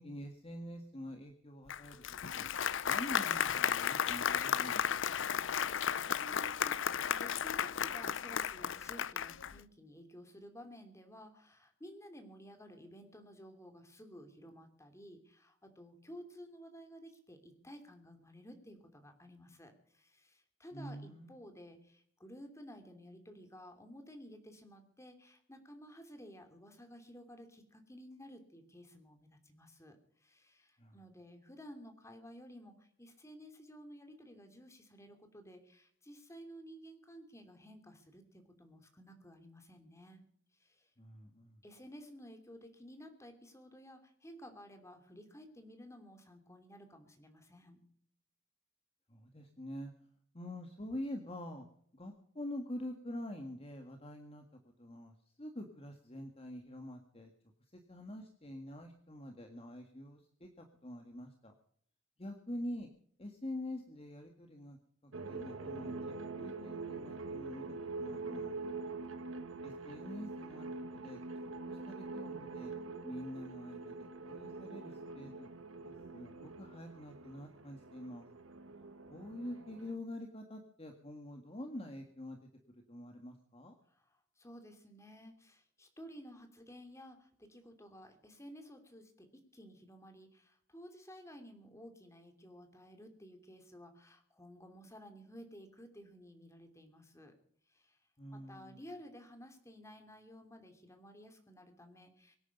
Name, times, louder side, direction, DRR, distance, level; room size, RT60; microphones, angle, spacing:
voice 1, 0.0-2.5 2.8-5.2 20.7-21.3 30.8-30.9 41.0-41.6 49.1-49.9 50.3-51.7 51.9-54.4 54.8-55.1 55.4-57.3 57.7-61.5 62.2-62.9 63.2-64.8 65.0-67.7 68.0-68.6 69.6-72.7 73.0-73.9 74.2-75.5 75.8-78.3 79.1-82.4 82.9-83.7 98.2-98.8, left 1 dB, 30° left, 4 dB, 1.8 m, -46 dB
Applause, 1.7-9.6, left 8 dB, 65° left, 0.6 m, -34 dB
voice 2, 5.4-40.2 40.6-40.9 41.6-47.8 68.8-69.3 83.9-97.3 97.7-98.0 98.3-102.4, equal, 15° left, 5 dB, 2.9 m, -54 dB
Wandering through the facade, 65.1-80.0, right 3 dB, 80° right, 1.4 m, -44 dB
24.0 x 9.8 x 5.3 m, 0.63 s
head